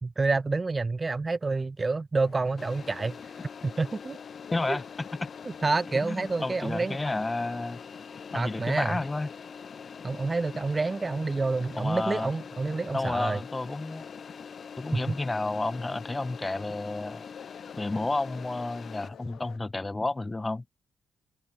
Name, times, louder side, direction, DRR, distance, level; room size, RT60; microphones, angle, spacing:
voice 1, 0.0-3.2 3.6-4.2 4.7-4.8 5.6-7.0 8.3-9.0 10.0-13.4 14.9-15.1, right 3 dB, 30° right, 0.8 m, -28 dB
sound 1, 2.2-19.6, left 10 dB, 70° left, 4.8 m, -52 dB
sound 2, 2.6-19.1, left 6 dB, 50° left, 1.1 m, -44 dB
voice 2, 4.5-5.3 5.9-7.8 8.3-9.3 11.8-12.3 12.9-14.1 14.8-17.2 17.8-20.6, left 2 dB, 20° left, 2.8 m, -31 dB
supercardioid pair, 60°, 0 cm